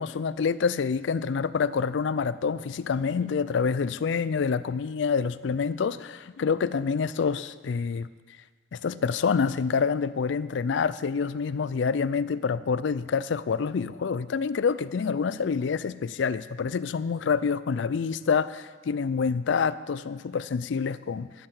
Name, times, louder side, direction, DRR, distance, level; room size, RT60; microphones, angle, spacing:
voice 1, 0.0-8.1 8.7-21.5, left 5 dB, 70° left, 16 dB, 0.4 m, -27 dB
11.5 x 7.6 x 7.0 m, 1.5 s
head